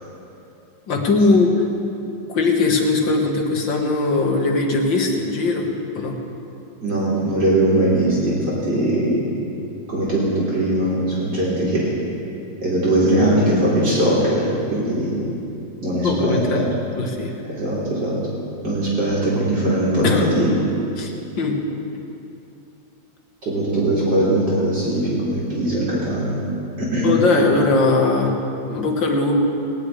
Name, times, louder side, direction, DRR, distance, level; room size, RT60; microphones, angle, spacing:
voice 1, 0.9-1.5 2.3-5.7 6.0-6.2 16.0-17.3 20.0-20.3 21.0-21.6 27.0-28.3 28.7-29.4, left 3 dB, 75° left, 1 dB, 2.3 m, -20 dB
voice 2, 6.8-9.2 9.9-11.9 12.6-15.2 15.8-16.4 17.4-18.1 18.6-20.5 23.4-26.4 26.8-27.1, right 1 dB, 70° right, -8 dB, 4.6 m, -20 dB
19.5 x 19.0 x 3.4 m, 2.7 s
omnidirectional pair, 2.0 m